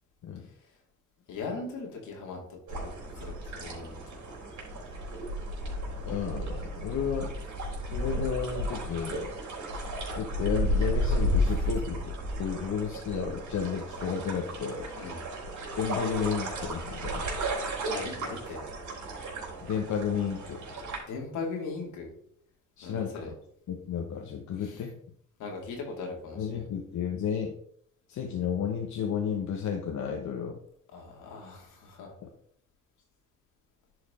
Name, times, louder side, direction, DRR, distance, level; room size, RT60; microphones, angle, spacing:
voice 1, 1.3-4.0 14.9-15.2 17.9-18.6 21.1-22.1 22.8-23.3 24.6-24.8 25.4-26.6 30.9-32.1, left 4 dB, 85° left, 0 dB, 2.5 m, -39 dB
sound 1, 2.7-21.0, equal, 70° right, 3.7 m, -33 dB
voice 2, 6.0-7.3 7.8-9.3 10.2-15.2 15.8-17.3 19.6-20.6 22.8-23.3 23.7-24.9 26.3-27.5 28.1-30.6 32.2-32.3, left 7 dB, 70° left, 2 dB, 1.1 m, -32 dB
10.5 x 4.9 x 3.8 m, 0.66 s
cardioid pair, 90°, 30 cm